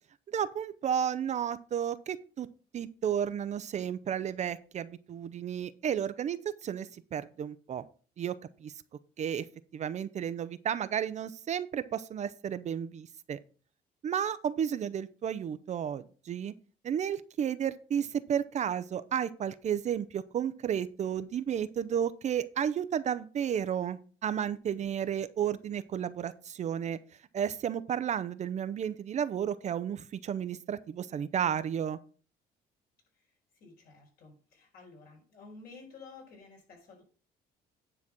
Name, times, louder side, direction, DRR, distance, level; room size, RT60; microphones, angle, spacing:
voice 1, 0.3-2.5 2.7-7.8 8.2-8.4 8.6-8.7 9.2-9.4 9.7-13.4 14.0-16.5 16.8-27.0 27.3-32.0, right 8 dB, 45° right, 13 dB, 0.6 m, -32 dB
voice 2, 33.5-37.0, left 4 dB, 60° left, 0 dB, 4.5 m, -52 dB
9.9 x 4.0 x 6.0 m, 0.39 s
cardioid pair, 110°, 17 cm